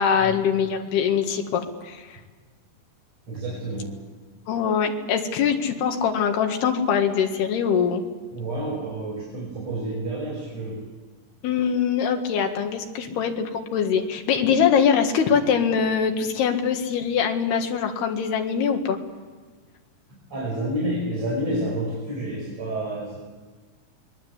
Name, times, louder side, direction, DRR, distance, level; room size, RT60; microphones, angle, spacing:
voice 1, 0.0-2.1 4.5-8.0 11.4-19.0, left 7 dB, 80° left, 5 dB, 3.8 m, -23 dB
voice 2, 3.3-4.0 8.3-10.8 13.1-13.2 20.3-23.2, right 1 dB, 40° right, -3 dB, 6.1 m, -29 dB
26.5 x 22.0 x 8.1 m, 1.4 s
omnidirectional pair, 4.6 m